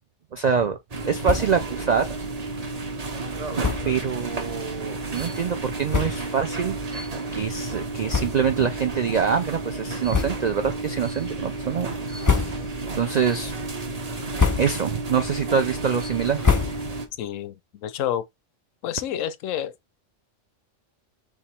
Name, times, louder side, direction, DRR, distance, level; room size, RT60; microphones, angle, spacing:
voice 1, 0.3-0.8 1.1-2.2 3.8-12.6 13.0-13.5 14.5-16.4, right 7 dB, 65° right, 0.4 m, -25 dB
sound 1, 0.9-17.1, right 3 dB, 35° right, 0.8 m, -32 dB
sound 2, 1.2-1.7 2.0-2.1 2.4-2.6 3.6-4.0 4.7-4.8 5.5-5.6 5.9-6.4 7.0-7.1 8.0-8.7 9.1-9.2 10.1-10.7 11.1-11.5 12.0-12.9 13.3-13.7 14.1-15.0 15.3-17.2, left 5 dB, 25° left, 0.5 m, -27 dB
voice 2, 17.2-17.5 17.8-18.2 18.8-19.7, left 10 dB, 85° left, 1.0 m, -28 dB
3.6 x 3.0 x 4.4 m
omnidirectional pair, 1.3 m